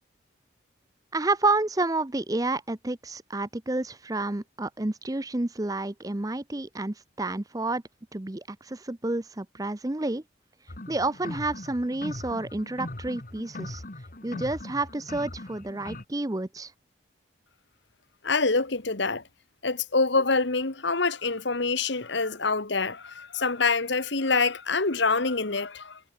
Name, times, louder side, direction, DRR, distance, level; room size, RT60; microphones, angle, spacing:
voice 1, 1.1-7.8 8.1-10.2 10.9-13.8 14.2-16.7, right 2 dB, 20° right, 0.6 m, -30 dB
sound 1, 10.7-16.0, left 1 dB, 45° left, 1.6 m, -40 dB
voice 2, 18.2-19.2 19.6-26.0, left 4 dB, 70° left, 1.7 m, -26 dB
head